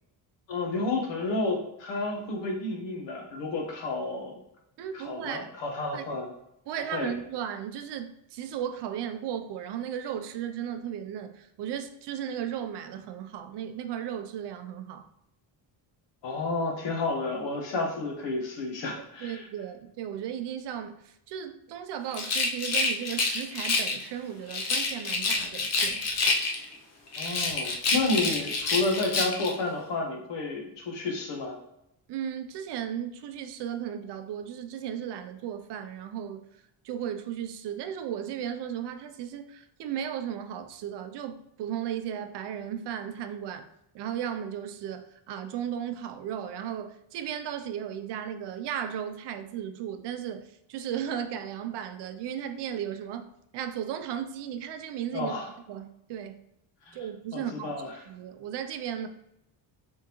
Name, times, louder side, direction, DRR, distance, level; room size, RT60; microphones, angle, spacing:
voice 1, 0.5-4.3 4.9-6.3 6.9-7.1 16.2-19.4 27.2-31.6 55.1-55.5 56.8-57.0 57.3-57.9, left 2 dB, 75° left, 1.2 m, -31 dB
voice 2, 4.8-5.5 5.9-6.1 6.7-15.1 19.2-26.1 32.1-43.7 43.9-55.3 55.7-56.4 56.9-57.7 58.1-59.1, right 9 dB, 65° right, 0.5 m, -35 dB
Rattle, 22.1-24.0 24.5-26.8 27.1-29.6, left 3 dB, 35° left, 0.5 m, -28 dB
3.6 x 3.6 x 2.9 m
cardioid pair, 160°, 45 cm